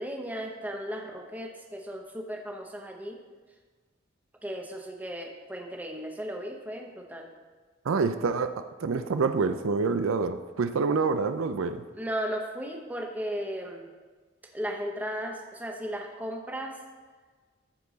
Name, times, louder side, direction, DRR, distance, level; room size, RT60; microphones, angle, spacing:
voice 1, 0.0-3.2 4.4-7.3 11.9-13.9 14.5-16.8, equal, 10° right, 1 dB, 0.8 m, -35 dB
voice 2, 7.9-11.8, right 4 dB, 85° right, 10 dB, 0.4 m, -27 dB
13.5 x 4.5 x 4.0 m, 1.4 s
head